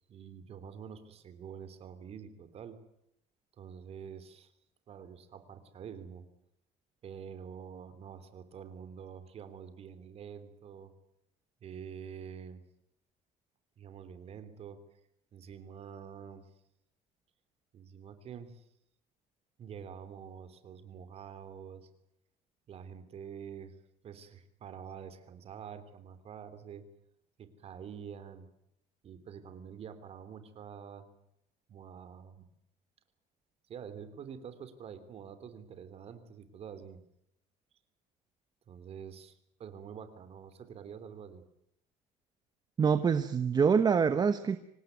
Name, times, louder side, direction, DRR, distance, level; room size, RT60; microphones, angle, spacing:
voice 1, 0.1-2.8 3.6-4.5 4.9-6.2 7.0-10.9 11.6-12.6 13.8-14.8 15.3-16.4 17.7-18.7 19.6-21.9 22.7-23.7 24.0-26.8 27.4-28.5 29.0-31.0 31.7-32.4 33.7-37.0 38.7-41.4, right 7 dB, 40° right, 12 dB, 3.3 m, -47 dB
voice 2, 42.8-44.6, right 6 dB, 25° right, 11 dB, 1.1 m, -25 dB
26.0 x 18.5 x 9.4 m, 0.78 s
cardioid pair, 145°, 16 cm